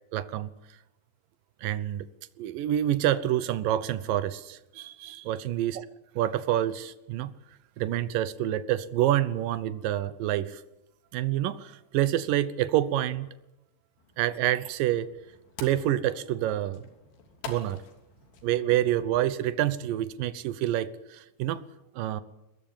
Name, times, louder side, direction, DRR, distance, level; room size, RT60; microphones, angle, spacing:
voice 1, 0.1-0.5 1.6-2.1 2.4-5.9 6.2-7.3 7.8-10.6 11.1-13.3 14.2-15.1 15.6-16.8 17.5-17.8 18.4-21.6 22.0-22.2, right 12 dB, 75° right, 15 dB, 2.1 m, -27 dB
sound 1, 14.0-19.4, left 5 dB, 65° left, 5.1 m, -48 dB
22.5 x 21.0 x 8.8 m, 0.92 s
omnidirectional pair, 5.1 m